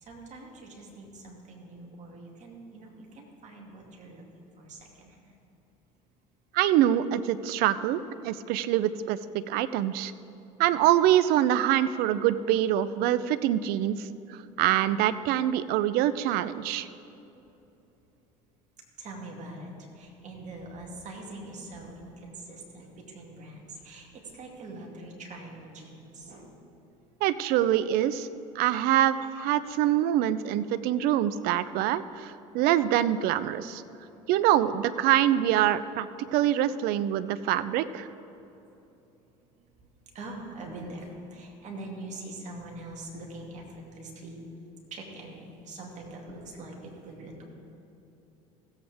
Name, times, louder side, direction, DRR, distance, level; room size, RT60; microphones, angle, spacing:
voice 1, 0.0-5.4 19.0-26.6 38.7-38.8 39.4-39.7 40.1-44.4 44.9-47.4, right 2 dB, 45° right, 0 dB, 2.4 m, -43 dB
voice 2, 6.5-10.1 10.6-16.9 27.2-28.3 28.5-33.8 34.3-38.1, right 12 dB, 60° right, 15 dB, 0.5 m, -25 dB
16.0 x 8.0 x 3.5 m, 2.9 s
hypercardioid pair, 75°, 18 cm